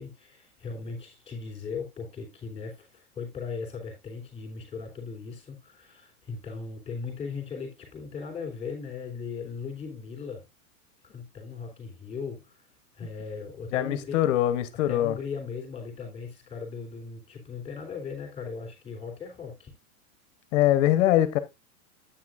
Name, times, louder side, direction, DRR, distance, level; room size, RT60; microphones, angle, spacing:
voice 1, 0.0-10.4 11.0-12.6 12.9-14.3 14.9-19.7, left 5 dB, 15° left, 3.5 m, -38 dB
voice 2, 13.7-15.1 20.5-21.4, left 13 dB, 55° left, 1.1 m, -23 dB
9.5 x 8.5 x 2.5 m
supercardioid pair, 150°, 44 cm